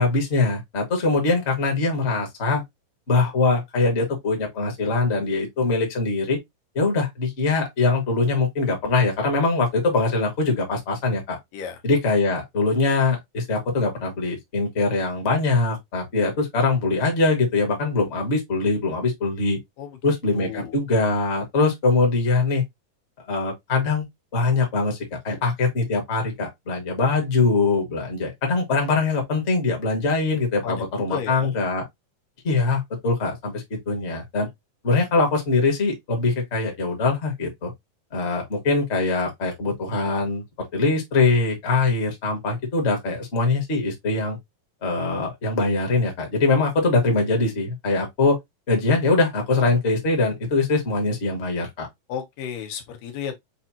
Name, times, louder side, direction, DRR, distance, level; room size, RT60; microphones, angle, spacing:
voice 1, 0.0-2.6 3.1-6.4 6.7-11.4 11.8-19.6 20.0-22.6 23.3-24.0 24.3-25.0 25.2-31.8 32.4-34.5 34.8-37.7 38.1-40.4 40.7-44.4 44.8-48.4 48.7-51.9, left 3 dB, 35° left, 1.1 m, -22 dB
voice 2, 20.3-20.8 30.6-30.8 31.1-31.6 52.1-53.4, left 8 dB, 90° left, 2.6 m, -33 dB
6.7 x 2.6 x 2.7 m
omnidirectional pair, 3.9 m